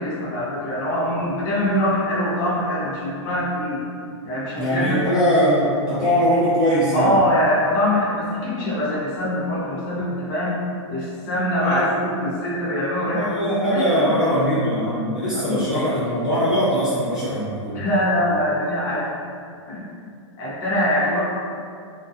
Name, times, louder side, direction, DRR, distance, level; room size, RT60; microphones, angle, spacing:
voice 1, 0.0-3.9 4.2-5.2 6.9-10.6 10.9-13.4 13.7-14.2 15.5-15.6 17.7-19.1 19.7-19.8 20.4-21.2, left 1 dB, 40° left, -8 dB, 0.7 m, -23 dB
voice 2, 4.6-7.1 11.6-11.9 13.0-17.8, equal, 5° right, -14 dB, 0.6 m, -21 dB
2.3 x 2.3 x 2.5 m, 2.3 s
hypercardioid pair, 155°, 16 cm